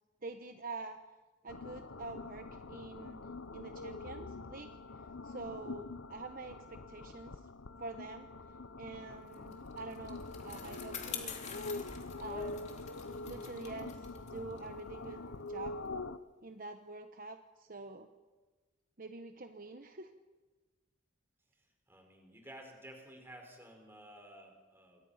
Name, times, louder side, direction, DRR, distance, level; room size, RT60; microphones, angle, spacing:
voice 1, 0.2-1.0 1.4-3.3 3.5-4.7 5.0-7.4 7.8-8.3 8.8-11.4 12.2-12.7 13.2-15.2 15.5-15.8 16.4-18.1 19.0-20.1, right 3 dB, 45° right, 6 dB, 1.1 m, -46 dB
sound 1, 1.5-16.2, left 3 dB, 85° left, 0.9 m, -45 dB
Bicycle, 9.3-16.0, left 6 dB, 35° left, 2.9 m, -48 dB
voice 2, 21.9-25.0, right 1 dB, 10° right, 2 dB, 4.9 m, -53 dB
27.5 x 23.0 x 5.8 m, 1.2 s
head